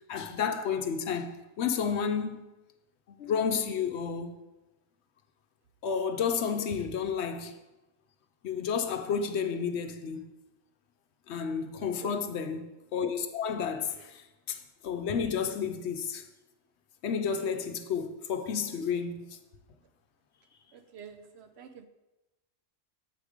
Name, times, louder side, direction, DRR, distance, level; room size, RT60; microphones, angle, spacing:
voice 1, 0.1-2.4 3.1-4.3 5.8-7.5 8.4-10.2 11.3-14.2 14.5-16.3 17.0-19.4, left 6 dB, 70° left, 0.9 m, -31 dB
voice 2, 11.8-12.2 20.7-21.9, right 7 dB, 65° right, 0.8 m, -49 dB
7.7 x 5.0 x 4.9 m
omnidirectional pair, 1.2 m